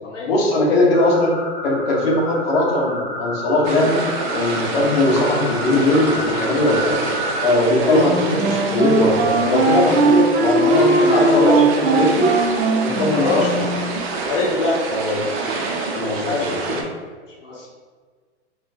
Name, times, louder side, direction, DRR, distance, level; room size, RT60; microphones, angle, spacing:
voice 1, 0.3-1.3 1.6-4.0 4.3-7.0 7.4-8.2 8.4-12.3 12.8-13.6 14.9-15.2 15.9-16.8, left 1 dB, 55° left, -2 dB, 1.2 m, -19 dB
sound 1, 0.9-7.5, equal, 10° left, 0.7 m, -30 dB
sound 2, 3.6-16.8, right 3 dB, 20° right, 0.3 m, -27 dB
Wind instrument woodwind instrument, 8.0-13.9, right 3 dB, 65° right, 0.8 m, -19 dB
voice 2, 11.0-11.6 13.1-13.5 14.2-15.4 16.2-16.8 17.4-17.7, left 3 dB, 85° left, -3 dB, 0.9 m, -23 dB
3.6 x 3.1 x 2.8 m, 1.5 s
hypercardioid pair, 120°, 36 cm